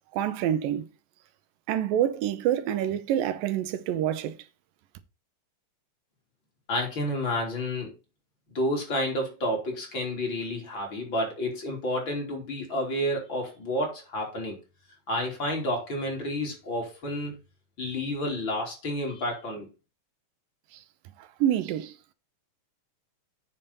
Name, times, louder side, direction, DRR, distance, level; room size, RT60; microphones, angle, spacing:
voice 1, 0.1-0.8 1.7-4.4 21.4-22.1, right 11 dB, 90° right, 2.6 m, -27 dB
voice 2, 6.7-7.9 8.5-14.6 15.1-17.4 17.8-19.7, left 1 dB, 35° left, 4.1 m, -30 dB
8.7 x 7.3 x 4.0 m
omnidirectional pair, 3.9 m